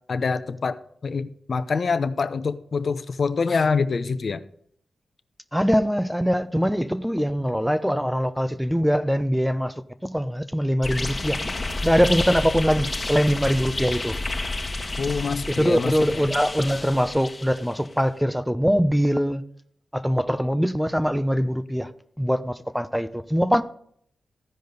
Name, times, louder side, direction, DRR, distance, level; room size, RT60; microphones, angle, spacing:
voice 1, 0.1-0.8 1.0-4.4 15.0-16.3, left 4 dB, 60° left, 0.8 m, -25 dB
voice 2, 5.5-9.7 10.0-11.4 11.8-14.2 15.5-19.4 19.9-21.9 22.2-23.6, equal, ahead, 0.7 m, -22 dB
sound 1, 10.8-17.9, left 2 dB, 30° left, 1.4 m, -30 dB
15.0 x 5.1 x 4.0 m
cardioid pair, 55°, 0 cm